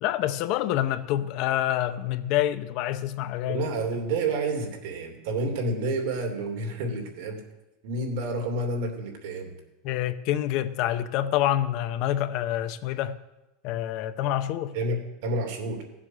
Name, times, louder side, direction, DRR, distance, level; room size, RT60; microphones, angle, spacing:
voice 1, 0.0-3.7 9.8-13.2 13.6-14.7, left 12 dB, 50° left, 0.7 m, -27 dB
voice 2, 3.5-7.4 7.8-9.5 14.7-15.8, right 2 dB, 65° right, 2.9 m, -29 dB
16.5 x 7.6 x 6.4 m
supercardioid pair, 155°, 0 cm